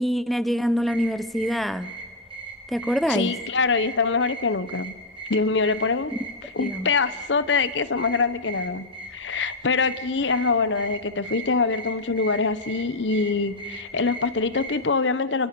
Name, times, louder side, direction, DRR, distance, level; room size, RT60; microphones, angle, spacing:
voice 1, 0.0-1.9 2.7-3.3 6.6-6.9, equal, ahead, 13 dB, 0.7 m, -25 dB
sound 1, 0.8-14.9, right 3 dB, 30° right, 4.5 m, -39 dB
voice 2, 3.1-4.9 5.3-6.1 6.4-15.5, left 4 dB, 80° left, 15 dB, 0.9 m, -24 dB
29.0 x 22.5 x 6.9 m, 1.4 s
head